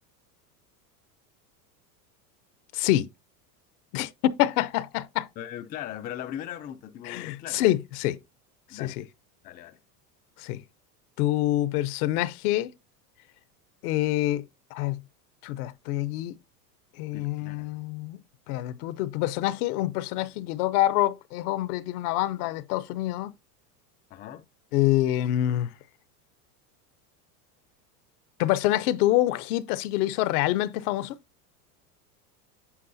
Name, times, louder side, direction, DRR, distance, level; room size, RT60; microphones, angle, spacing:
voice 1, 2.7-3.1 3.9-5.3 7.0-8.2 8.8-8.9 10.4-10.6 11.2-12.7 13.8-14.4 14.7-15.0 15.4-16.3 17.0-18.2 18.5-23.3 24.7-25.7 28.4-31.2, left 15 dB, 70° left, 0.8 m, -26 dB
voice 2, 5.4-7.6 8.7-9.0 9.4-9.8 17.1-17.7 24.1-24.5, left 11 dB, 20° left, 0.3 m, -39 dB
8.5 x 7.2 x 2.7 m
supercardioid pair, 115°, 47 cm